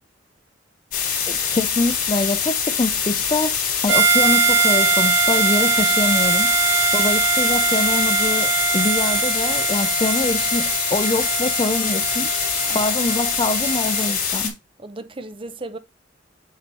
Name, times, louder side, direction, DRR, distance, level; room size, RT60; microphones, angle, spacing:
sound 1, 0.9-14.5, left 7 dB, 50° left, 3.1 m, -24 dB
voice 1, 1.3-3.6 3.8-6.6 6.9-12.3 12.7-14.6, left 2 dB, 25° left, 0.4 m, -24 dB
Harmonica, 3.9-14.2, right 5 dB, 85° right, 1.6 m, -22 dB
voice 2, 14.8-15.8, right 2 dB, 25° right, 0.6 m, -35 dB
7.5 x 3.0 x 5.3 m
head